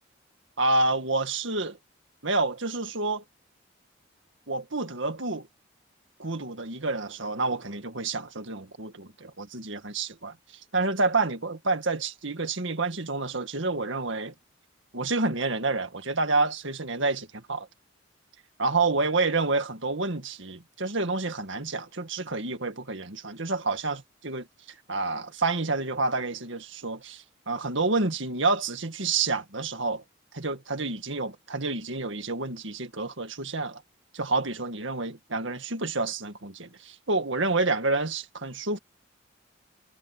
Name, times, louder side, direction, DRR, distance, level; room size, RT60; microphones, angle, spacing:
voice 1, 0.6-1.8 2.2-3.2 4.5-5.5 6.2-14.3 14.9-17.7 18.6-30.0 30.3-33.8 34.1-38.8, right 3 dB, 65° right, 2.0 m, -29 dB
head